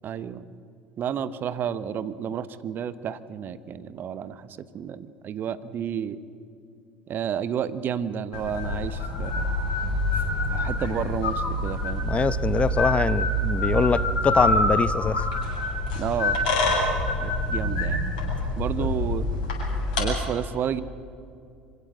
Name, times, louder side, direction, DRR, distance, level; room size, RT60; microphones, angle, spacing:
voice 1, 0.0-0.5 1.0-4.5 4.7-6.2 7.1-9.5 10.5-12.1 15.9-16.8 17.2-18.0 18.6-19.3 20.0-20.8, right 8 dB, 45° right, 14 dB, 1.1 m, -31 dB
sound 1, 8.3-20.0, left 1 dB, 70° left, 7.8 m, -26 dB
voice 2, 12.0-15.3 18.8-18.9, left 5 dB, 25° left, 16 dB, 0.9 m, -24 dB
25.5 x 16.5 x 7.8 m, 2.4 s
hypercardioid pair, 70°, 5 cm